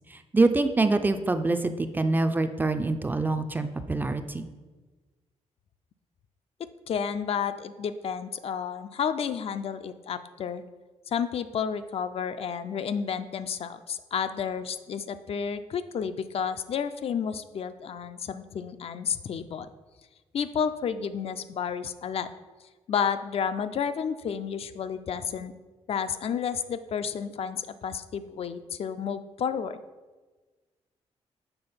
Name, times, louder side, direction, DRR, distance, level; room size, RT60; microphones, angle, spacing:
voice 1, 0.1-4.4, right 3 dB, 15° right, 9 dB, 0.4 m, -25 dB
voice 2, 6.9-10.6 11.1-19.7 20.3-22.3 22.9-25.5 25.9-29.8, left 7 dB, 60° left, 11 dB, 0.4 m, -31 dB
6.9 x 3.7 x 5.6 m, 1.3 s
cardioid pair, 115°, 12 cm